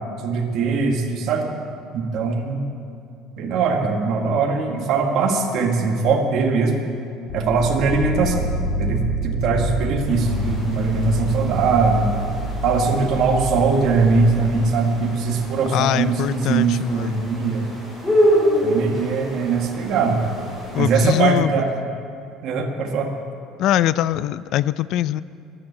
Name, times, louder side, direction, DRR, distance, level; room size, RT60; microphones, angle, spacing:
voice 1, 0.2-1.6 1.9-2.6 3.4-6.8 7.3-8.5 8.8-12.1 12.6-17.6 18.6-20.4 20.8-21.7 22.4-23.1, right 4 dB, 45° right, 1 dB, 1.5 m, -21 dB
sound 1, 7.3-15.1, equal, 80° left, 2.3 m, -27 dB
sound 2, 10.1-21.3, equal, 5° left, 5.0 m, -27 dB
voice 2, 15.7-17.2 20.7-21.6 23.6-25.2, left 12 dB, 50° left, 17 dB, 0.3 m, -22 dB
13.5 x 11.5 x 8.5 m, 2.6 s
cardioid pair, 180°, 0 cm